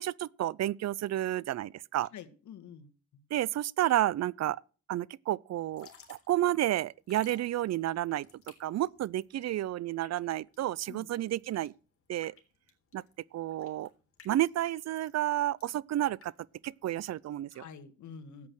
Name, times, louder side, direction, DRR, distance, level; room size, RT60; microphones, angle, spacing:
voice 1, 0.0-2.1 3.3-4.6 4.9-8.3 8.6-11.7 12.1-12.3 12.9-13.0 13.3-13.9 14.2-16.3 16.6-17.6, right 13 dB, 60° right, 0.5 m, -31 dB
voice 2, 2.1-3.2 10.9-11.1 17.5-18.5, left 7 dB, 70° left, 1.7 m, -48 dB
Drip / Trickle dribble, 5.6-17.2, left 6 dB, 50° left, 3.7 m, -59 dB
13.0 x 8.7 x 6.3 m
cardioid pair, 90°, 30 cm